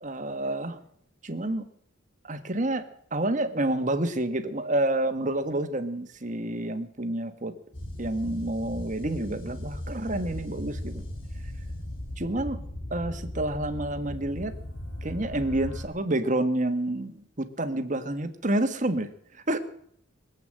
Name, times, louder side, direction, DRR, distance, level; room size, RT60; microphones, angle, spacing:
voice 1, 0.0-0.8 1.2-1.6 2.2-7.5 8.0-11.1 12.2-12.6 12.9-14.5 15.0-19.6, right 1 dB, 40° right, 8 dB, 1.5 m, -29 dB
sound 1, 7.7-15.9, left 1 dB, 85° left, 4.2 m, -37 dB
22.0 x 8.4 x 7.7 m, 0.68 s
head